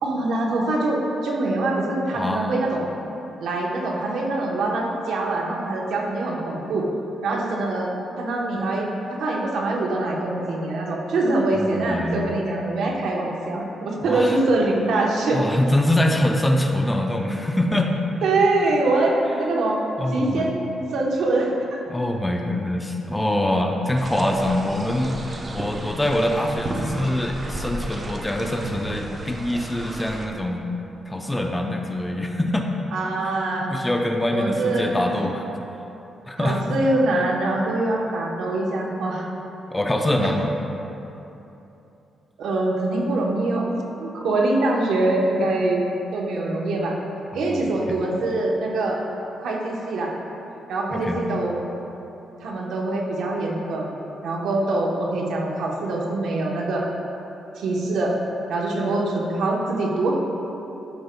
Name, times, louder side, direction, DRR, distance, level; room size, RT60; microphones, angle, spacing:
voice 1, 0.0-2.9 3.4-6.9 7.2-7.9 8.2-8.9 9.2-15.4 18.2-19.8 20.1-20.5 20.9-21.8 32.9-33.7 34.3-35.2 36.4-39.3 40.2-40.3 42.4-43.7 44.0-45.8 46.1-46.9 47.3-49.0 49.4-50.1 50.7-51.6 52.4-53.9 54.2-56.8 57.5-58.1 58.5-60.2, right 2 dB, 80° right, -1 dB, 0.9 m, -24 dB
voice 2, 2.1-2.6 11.7-12.3 14.0-14.4 15.3-17.9 20.0-20.5 21.9-30.6 31.1-32.7 33.7-35.5 36.3-36.7 39.7-40.5 47.4-48.0 50.9-51.2, left 1 dB, 15° left, 3 dB, 0.5 m, -24 dB
sound 1, 24.0-30.3, right 1 dB, 35° right, 0.7 m, -33 dB
11.5 x 5.1 x 2.2 m, 3.0 s
cardioid pair, 90°, 0 cm